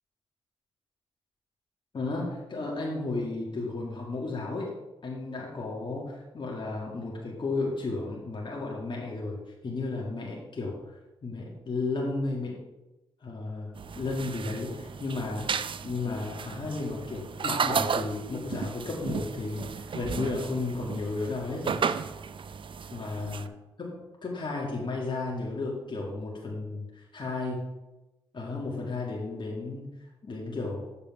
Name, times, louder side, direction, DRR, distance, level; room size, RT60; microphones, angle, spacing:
voice 1, 1.9-4.8 5.0-12.6 13.2-21.8 22.9-23.5 23.8-27.8 28.3-29.9 30.2-30.9, left 3 dB, 45° left, -3 dB, 1.9 m, -33 dB
sound 1, 13.8-23.5, right 6 dB, 50° right, 0.5 m, -34 dB
7.4 x 5.3 x 5.5 m, 1.0 s
supercardioid pair, 45°, 11 cm